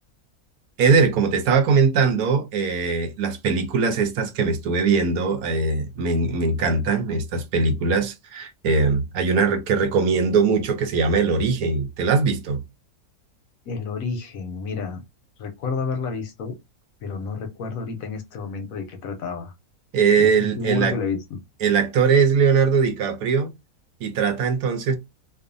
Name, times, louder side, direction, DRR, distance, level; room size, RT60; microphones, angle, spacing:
voice 1, 0.8-12.6 19.9-21.0 21.6-23.5 24.0-25.0, right 5 dB, 75° right, 1.0 m, -21 dB
voice 2, 13.7-15.0 15.4-16.6 17.0-19.5 20.2-21.4, left 4 dB, 70° left, 1.0 m, -30 dB
2.6 x 2.4 x 2.5 m
omnidirectional pair, 1.6 m